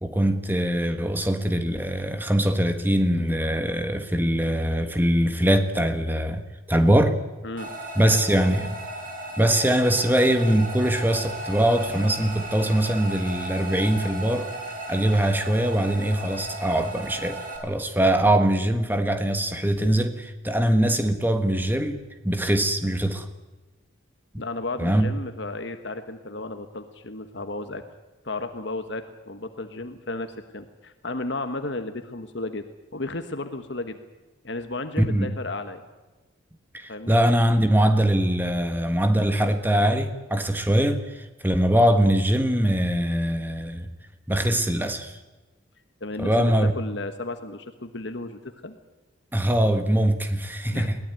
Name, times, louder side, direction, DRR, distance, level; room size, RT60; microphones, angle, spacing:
voice 1, 0.0-6.4 6.7-7.2 7.9-8.8 9.4-14.5 14.9-23.3 24.3-24.4 24.8-25.1 35.0-35.3 36.7-43.9 44.3-45.2 46.2-46.7 49.3-51.0, right 1 dB, 10° right, 1.5 m, -22 dB
voice 2, 7.4-8.3 24.4-27.8 28.2-32.6 32.9-34.0 34.4-35.8 36.9-37.2 46.0-48.8 50.7-50.9, left 2 dB, 60° left, 1.4 m, -33 dB
sound 1, 7.6-17.6, right 1 dB, 40° right, 5.1 m, -36 dB
21.5 x 17.5 x 9.1 m
head